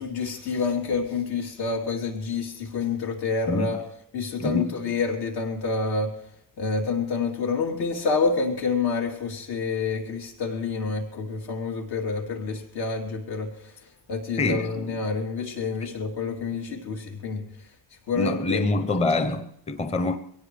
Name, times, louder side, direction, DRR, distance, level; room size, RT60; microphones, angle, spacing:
voice 1, 0.0-3.8 4.1-6.1 6.6-13.5 14.1-17.4 18.1-18.6, left 4 dB, 85° left, 3.4 m, -28 dB
voice 2, 4.4-4.7 14.4-14.7 18.1-20.2, left 2 dB, 15° left, 0.6 m, -25 dB
22.5 x 17.5 x 3.3 m
cardioid pair, 160°, 38 cm